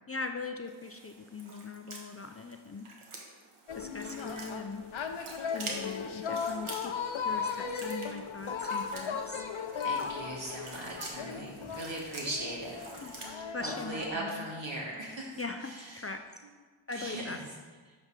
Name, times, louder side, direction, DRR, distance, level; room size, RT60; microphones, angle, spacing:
voice 1, 0.1-2.9 3.8-4.8 5.5-6.9 7.2-9.4 13.0-13.1 13.5-14.4 15.4-16.2 16.9-17.4, left 3 dB, 30° left, 6 dB, 0.4 m, -40 dB
sound 1, 0.7-13.3, right 2 dB, 90° right, 1.3 m, -47 dB
sound 2, 3.7-14.1, left 6 dB, 70° left, 0.7 m, -37 dB
voice 2, 6.1-6.5 9.8-12.8 13.1-16.1 16.9-17.5, right 1 dB, 65° right, -3 dB, 2.1 m, -39 dB
8.8 x 3.4 x 5.8 m, 1.4 s
wide cardioid pair, 60°, 49 cm